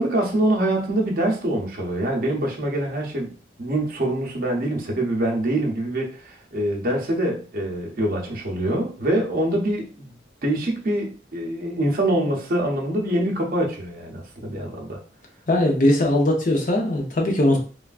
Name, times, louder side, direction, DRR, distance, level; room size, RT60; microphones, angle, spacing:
voice 1, 0.0-3.3 3.6-10.1 10.4-15.0, right 1 dB, 50° right, -1 dB, 0.7 m, -24 dB
voice 2, 15.5-17.6, left 1 dB, 45° left, 1 dB, 0.7 m, -20 dB
3.3 x 2.3 x 2.4 m, 0.39 s
head